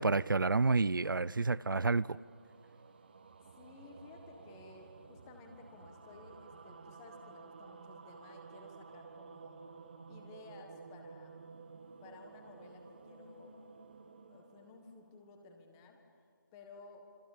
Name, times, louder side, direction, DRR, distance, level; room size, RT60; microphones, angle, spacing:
voice 1, 0.0-2.2, right 3 dB, 75° right, 0.6 m, -29 dB
sound 1, 1.2-15.6, right 4 dB, 30° right, 1.3 m, -54 dB
voice 2, 3.6-9.6 10.1-11.4 12.0-13.7 14.3-16.0 16.5-17.2, left 4 dB, 10° left, 1.5 m, -56 dB
26.5 x 25.5 x 8.7 m
figure-of-eight pair, 170°, 11 cm